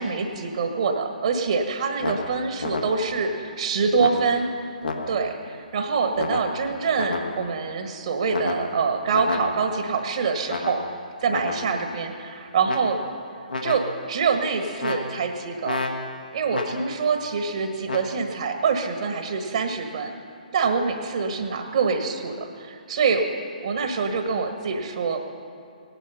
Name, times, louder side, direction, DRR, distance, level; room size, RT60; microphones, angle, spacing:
voice 1, 0.0-4.5 5.1-10.8 11.2-13.0 13.6-15.8 16.3-20.1 20.5-23.3 23.6-25.2, right 5 dB, 50° right, 5 dB, 1.5 m, -25 dB
sound 1, 2.0-3.3 4.0-5.5 6.2-7.7 8.3-9.9 10.5-11.9 12.6-13.2 13.5-14.2 14.8-17.1 17.9-18.2, left 2 dB, 75° left, 1.4 m, -31 dB
18.0 x 11.0 x 5.7 m, 2.4 s
figure-of-eight pair, 130°, 5 cm